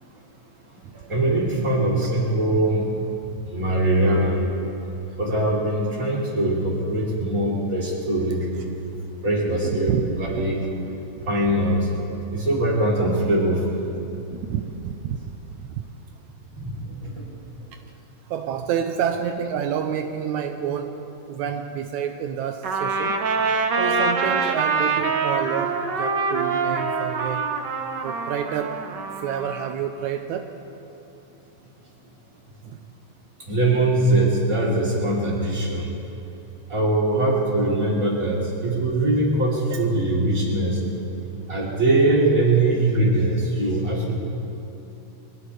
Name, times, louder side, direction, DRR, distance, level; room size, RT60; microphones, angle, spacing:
voice 1, 1.1-2.9 3.2-4.5 5.2-8.6 9.2-10.6 11.3-11.8 12.3-13.8 16.6-16.8 17.0-17.1 33.5-35.9 36.7-40.8 41.5-44.1, right 1 dB, 25° right, -5 dB, 3.7 m, -22 dB
voice 2, 9.6-10.1 10.3-10.5 14.3-15.2 15.7-15.9 18.3-21.0 21.3-23.2 23.8-27.5 28.0-28.8 29.2-30.5 32.6-32.8 39.7-39.8, right 8 dB, 85° right, 5 dB, 2.1 m, -28 dB
Trumpet, 22.6-29.7, right 4 dB, 65° right, 1.1 m, -25 dB
23.0 x 19.0 x 3.3 m, 2.9 s
omnidirectional pair, 3.3 m